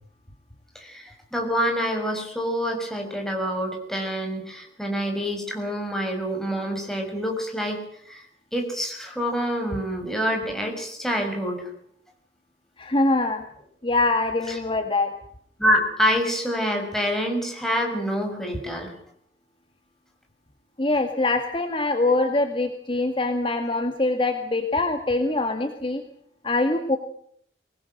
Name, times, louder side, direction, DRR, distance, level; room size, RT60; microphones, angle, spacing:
voice 1, 0.7-7.8 8.1-8.3 8.5-11.7 14.5-14.6 15.6-18.9, equal, ahead, 2 dB, 6.0 m, -26 dB
voice 2, 12.8-13.4 13.8-15.1 20.8-26.0 26.4-27.0, left 2 dB, 30° left, 5 dB, 1.9 m, -23 dB
24.5 x 19.5 x 7.8 m, 0.66 s
head